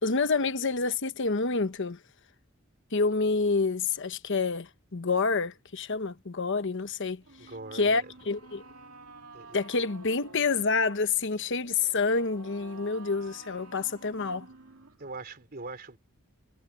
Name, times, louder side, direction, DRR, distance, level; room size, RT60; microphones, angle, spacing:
voice 1, 0.0-2.0 2.9-7.2 7.7-8.6 9.5-14.5, left 4 dB, 60° left, 1.0 m, -28 dB
sound 1, 7.2-15.2, right 3 dB, 85° right, 2.4 m, -51 dB
voice 2, 7.4-8.1 9.3-9.6 15.0-16.0, right 3 dB, 45° right, 3.6 m, -41 dB
head